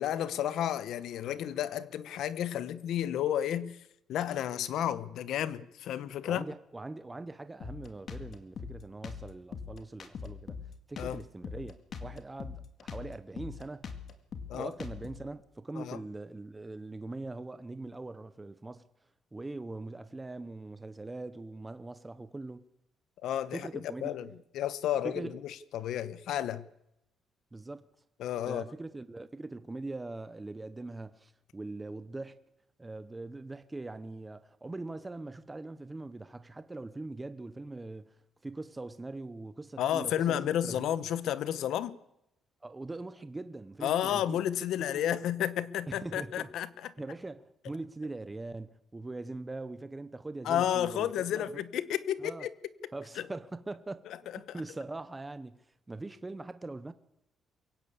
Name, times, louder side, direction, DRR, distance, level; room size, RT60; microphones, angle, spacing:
voice 1, 0.0-3.8 4.1-6.4 11.0-11.2 14.5-14.7 15.8-16.0 23.2-23.7 24.0-26.7 28.2-28.6 39.8-42.0 43.8-46.9 50.4-52.5 53.2-53.3 54.5-54.6, left 10 dB, 65° left, 1.1 m, -32 dB
voice 2, 6.2-10.6 10.9-13.9 14.5-18.8 19.3-22.6 23.5-24.3 25.0-25.4 27.5-27.9 28.4-32.4 32.8-38.2 38.4-40.9 42.6-44.4 44.8-45.1 45.9-46.5 47.0-51.6 52.2-52.5 52.9-54.0 54.3-55.6 55.9-56.9, right 2 dB, 10° right, 0.7 m, -42 dB
Drum kit, 7.6-15.3, left 6 dB, 40° left, 2.0 m, -42 dB
23.0 x 16.5 x 8.7 m
cardioid pair, 170°, 0 cm